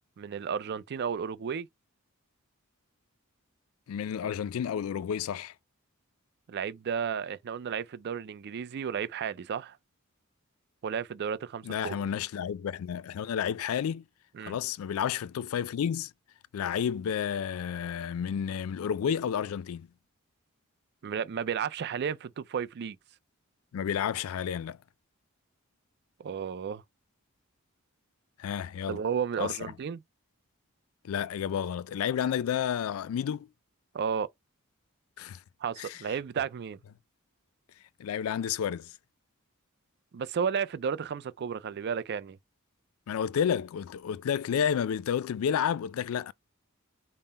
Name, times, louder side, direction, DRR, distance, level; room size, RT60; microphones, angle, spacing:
voice 1, 0.2-1.7 6.5-9.8 10.8-12.0 14.3-14.5 21.0-23.0 26.2-26.8 28.9-30.0 33.9-34.3 35.6-36.8 40.1-42.4, right 7 dB, 50° right, 0.4 m, -33 dB
voice 2, 3.9-5.5 11.6-14.0 14.4-16.1 16.5-19.9 23.7-24.8 28.4-29.0 29.4-29.6 31.0-33.5 35.2-35.4 35.8-36.0 38.0-38.9 43.1-46.3, left 8 dB, 75° left, 0.3 m, -31 dB
5.5 x 2.1 x 4.0 m
head